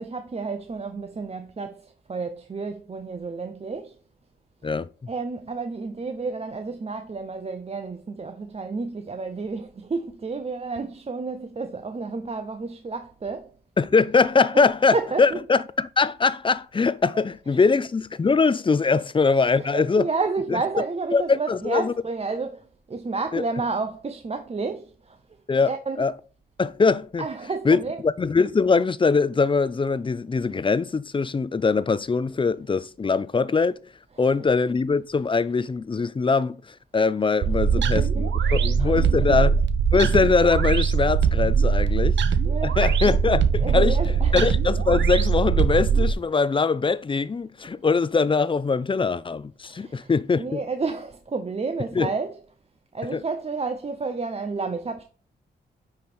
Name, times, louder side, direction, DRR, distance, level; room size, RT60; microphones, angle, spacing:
voice 1, 0.0-4.0 5.1-13.5 14.5-14.7 14.9-15.4 19.5-25.2 25.6-26.0 27.2-28.0 37.6-39.4 42.4-42.8 43.6-44.4 49.6-50.1 50.4-52.4 52.9-55.0, right 4 dB, 35° right, 0.7 m, -31 dB
voice 2, 13.8-20.1 21.1-21.9 23.3-23.4 25.5-25.7 26.0-26.1 26.6-27.3 27.6-33.8 34.2-39.5 39.9-42.2 42.6-44.0 44.3-50.6 51.9-52.1 53.1-53.2, left 4 dB, 30° left, 0.4 m, -22 dB
sound 1, 37.4-46.1, right 6 dB, 85° right, 0.6 m, -21 dB
9.3 x 3.3 x 4.3 m
cardioid pair, 65°, 18 cm